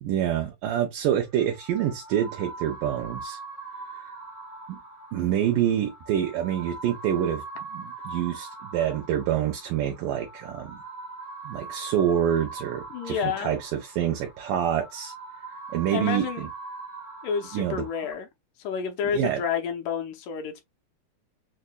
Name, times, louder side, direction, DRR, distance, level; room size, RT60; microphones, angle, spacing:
voice 1, 0.0-3.4 4.7-4.8 5.1-7.4 7.7-10.8 11.5-15.1 15.7-16.5 17.5-17.9 19.1-19.4, right 10 dB, 75° right, 2.1 m, -27 dB
sound 1, 1.3-18.1, right 3 dB, 10° right, 0.9 m, -42 dB
voice 2, 12.9-13.5 15.9-16.5 17.2-18.3 18.6-20.6, left 7 dB, 75° left, 2.0 m, -30 dB
6.6 x 2.6 x 2.2 m
omnidirectional pair, 4.3 m